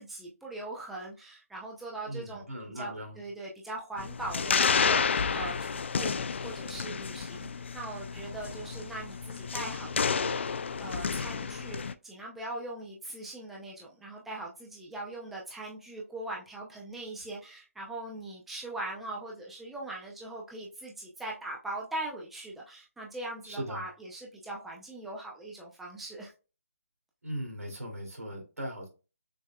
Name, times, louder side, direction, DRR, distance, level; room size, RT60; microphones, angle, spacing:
voice 1, 0.0-2.4 2.8-10.4 10.8-26.3, right 2 dB, ahead, -3 dB, 0.5 m, -41 dB
voice 2, 2.0-3.2 23.4-23.9 27.2-28.9, equal, 80° right, 1 dB, 2.4 m, -39 dB
sound 1, 4.0-11.9, left 5 dB, 50° left, 0.3 m, -31 dB
6.4 x 2.7 x 2.2 m, 0.32 s
figure-of-eight pair, 155°, 8 cm